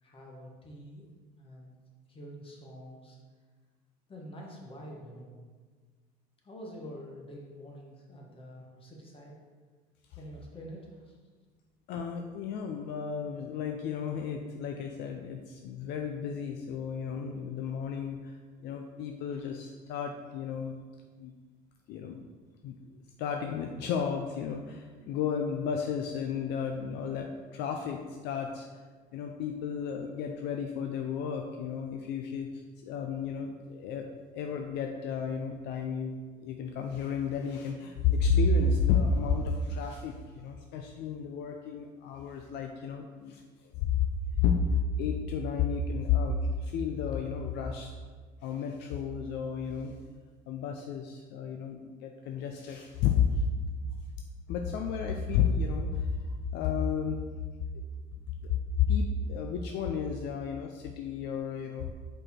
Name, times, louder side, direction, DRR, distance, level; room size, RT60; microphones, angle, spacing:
voice 1, 0.0-1.7 2.1-3.2 4.1-5.3 6.4-9.4 10.1-11.2, equal, 30° left, -1 dB, 1.5 m, -47 dB
voice 2, 11.9-18.3 18.6-20.8 21.2-21.3 21.9-22.3 22.6-22.8 23.2-28.7 29.1-34.1 34.3-36.1 36.4-43.4 43.8-44.0 44.4-47.9 48.4-49.9 50.5-53.4 54.5-57.2 58.4-61.9, left 5 dB, 65° left, 4 dB, 0.5 m, -32 dB
5.0 x 4.4 x 4.3 m, 1.5 s
supercardioid pair, 95°, 19 cm